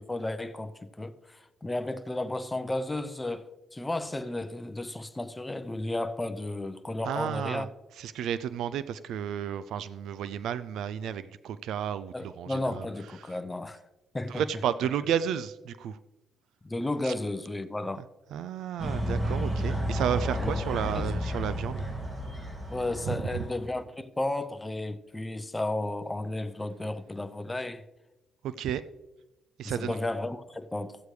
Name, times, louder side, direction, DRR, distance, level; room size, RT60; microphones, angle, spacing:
voice 1, 0.0-7.7 12.1-13.8 14.1-14.4 16.6-18.0 20.4-20.6 21.0-21.1 22.7-27.8 29.6-31.0, left 2 dB, 15° left, 0.7 m, -33 dB
voice 2, 7.0-7.7 8.0-12.9 13.2-13.3 14.3-16.0 17.0-17.1 18.3-21.8 23.1-23.4 28.4-28.8 29.6-30.0, right 9 dB, 80° right, 0.3 m, -32 dB
sound 1, 18.8-23.7, equal, 25° right, 2.3 m, -32 dB
14.0 x 8.2 x 3.2 m
cardioid pair, 90°, 0 cm